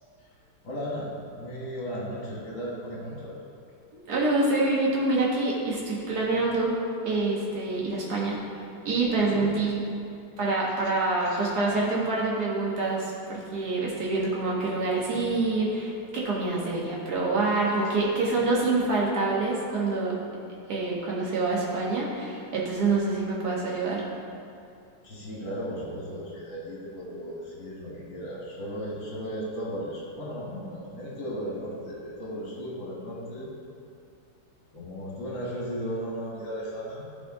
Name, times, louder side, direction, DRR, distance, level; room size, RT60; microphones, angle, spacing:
voice 1, 0.6-3.3 9.3-9.6 11.3-11.4 17.7-17.8 25.0-33.5 34.7-37.1, equal, 65° left, -4 dB, 2.4 m, -35 dB
voice 2, 4.1-6.7 7.1-8.4 8.9-9.8 10.4-20.2 20.7-24.0, right 3 dB, 50° right, -4 dB, 1.9 m, -26 dB
12.0 x 4.3 x 3.9 m, 2.6 s
omnidirectional pair, 2.3 m